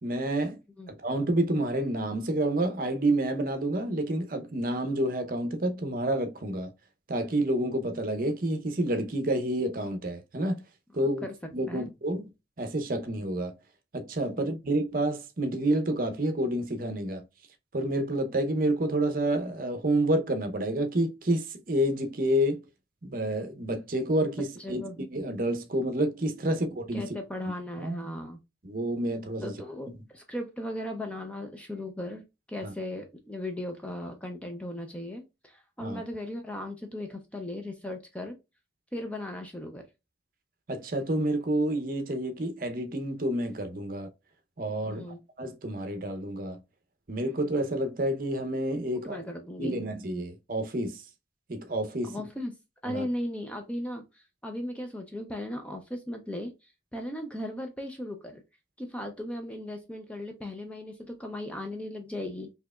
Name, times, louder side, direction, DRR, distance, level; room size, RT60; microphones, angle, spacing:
voice 1, 0.0-0.6 0.9-6.7 7.1-10.6 10.9-11.2 11.5-12.3 12.6-13.5 13.9-17.2 17.7-22.6 23.0-27.1 27.8-28.0 28.6-29.5 32.6-32.7 35.8-36.0 40.7-44.1 44.6-45.0 45.4-46.6 47.1-49.2 49.6-51.0 51.5-52.3 52.9-53.1, right 1 dB, 50° right, 0.7 m, -29 dB
voice 2, 11.0-11.3 11.7-11.9 14.4-14.5 24.6-25.0 26.5-26.6 26.9-28.4 29.4-38.4 38.9-39.8 44.9-45.2 48.9-49.8 52.0-52.5 52.8-58.4 58.8-62.5, left 1 dB, 5° left, 0.4 m, -37 dB
4.5 x 2.8 x 2.3 m
head